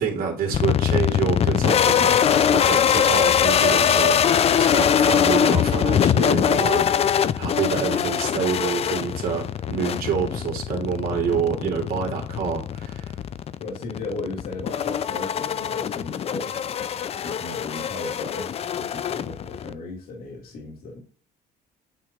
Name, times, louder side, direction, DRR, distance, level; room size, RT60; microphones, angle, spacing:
voice 1, 0.0-13.1, right 6 dB, 60° right, 2.6 m, -27 dB
sound 1, 0.5-19.7, left 8 dB, 35° left, 0.4 m, -22 dB
voice 2, 13.6-16.7 17.2-21.0, left 3 dB, 60° left, 2.2 m, -36 dB
8.8 x 3.0 x 3.5 m
cardioid pair, 110°, 17 cm